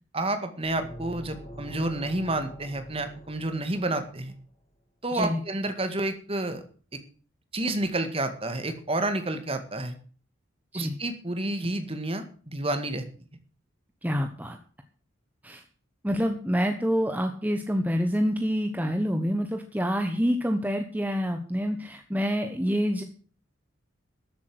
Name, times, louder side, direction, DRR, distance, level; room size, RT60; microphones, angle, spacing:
voice 1, 0.1-4.4 5.0-6.6 7.5-10.0 10.7-13.1, right 2 dB, 30° right, 9 dB, 1.9 m, -30 dB
sound 1, 0.6-4.3, equal, 30° left, 4.3 m, -45 dB
voice 2, 14.0-14.6 15.4-15.6 16.0-23.0, equal, 10° right, 5 dB, 1.1 m, -27 dB
13.0 x 8.4 x 7.9 m, 0.41 s
head